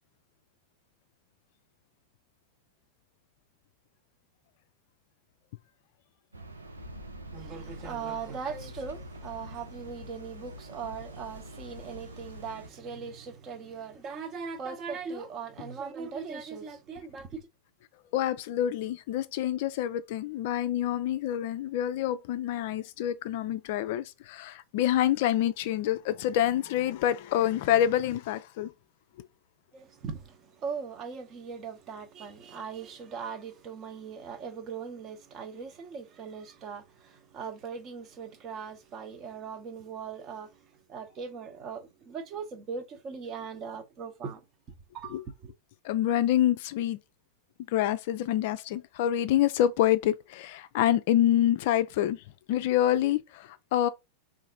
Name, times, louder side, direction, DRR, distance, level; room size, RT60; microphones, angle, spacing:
sound 1, 6.3-12.7, equal, 80° right, 0.7 m, -45 dB
voice 1, 7.3-17.5 29.7-44.4 44.9-45.5, right 6 dB, 30° right, 0.8 m, -39 dB
voice 2, 18.1-28.7 29.2-29.3 45.1-45.2 45.8-47.0 47.7-52.2 52.5-53.9, left 11 dB, 50° left, 0.3 m, -27 dB
4.0 x 2.6 x 3.7 m
figure-of-eight pair, 90°, 0 cm